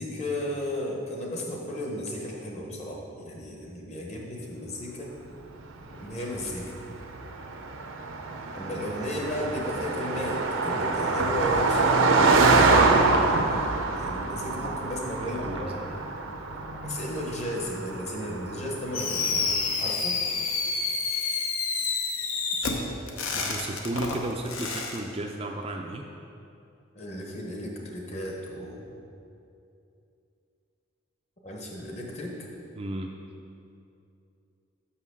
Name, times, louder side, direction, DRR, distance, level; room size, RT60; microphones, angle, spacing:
voice 1, 0.0-5.2 6.0-6.8 8.5-12.1 13.9-16.0 16.8-20.2 26.9-28.9 31.4-32.5, left 1 dB, 30° left, -1 dB, 1.0 m, -34 dB
Car passing by, 5.9-19.6, right 3 dB, 75° right, 0.6 m, -25 dB
voice 2, 15.2-15.9 23.3-26.0 32.8-33.2, right 2 dB, 25° right, 2 dB, 0.4 m, -34 dB
Fireworks, 18.9-25.0, left 4 dB, 75° left, 0.8 m, -29 dB
6.0 x 5.6 x 6.2 m, 2.7 s
head